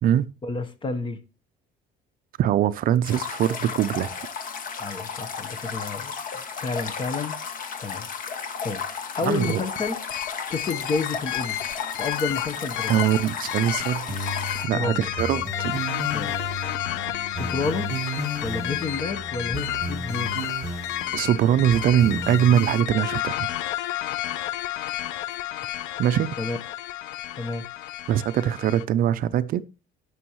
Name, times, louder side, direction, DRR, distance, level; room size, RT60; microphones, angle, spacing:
voice 1, 0.4-1.2 4.8-6.1 6.5-7.4 7.8-8.1 8.6-8.8 9.2-10.0 10.5-11.6 12.0-13.0 14.7-15.1 16.1-16.4 17.3-18.0 18.4-20.3 26.4-26.6 27.4-27.7, left 4 dB, 25° left, 1.0 m, -30 dB
voice 2, 2.4-4.1 9.3-9.6 12.9-14.1 14.6-15.8 21.1-23.4 26.0-26.4 28.1-29.6, right 11 dB, 50° right, 0.5 m, -22 dB
sound 1, 3.0-14.7, left 6 dB, 45° left, 1.7 m, -34 dB
sound 2, 9.4-28.8, left 13 dB, 80° left, 0.7 m, -31 dB
sound 3, 14.1-22.8, right 1 dB, 15° right, 1.9 m, -34 dB
18.5 x 6.2 x 3.0 m
cardioid pair, 150°, 19 cm